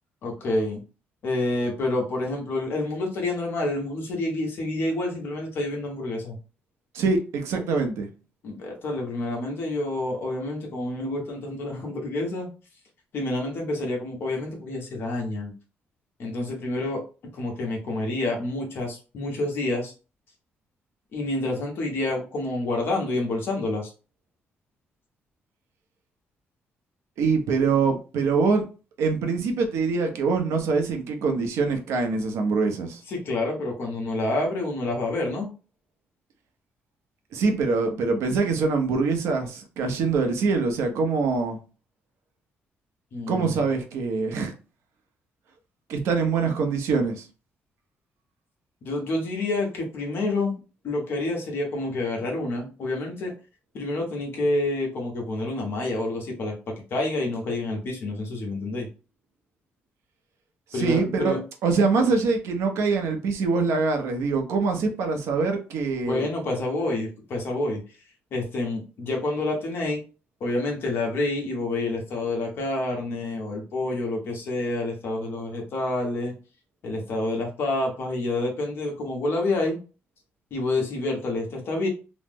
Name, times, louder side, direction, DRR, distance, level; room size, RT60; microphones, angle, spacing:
voice 1, 0.2-0.8 1.2-6.4 8.4-12.5 13.1-15.5 16.2-17.0 17.3-19.9 21.1-23.9 33.1-35.5 43.1-43.6 48.8-50.5 50.8-53.3 53.7-58.9 60.7-61.4 66.0-67.8 68.3-70.0 70.4-76.3 76.8-79.8 80.5-81.9, left 2 dB, 55° left, 1.0 m, -28 dB
voice 2, 6.9-8.1 27.2-28.6 29.0-33.0 37.3-41.6 43.3-44.5 45.9-47.3 60.7-61.3 61.6-66.3, right 4 dB, 85° right, 0.7 m, -24 dB
3.0 x 2.0 x 3.5 m
cardioid pair, 165°, 5 cm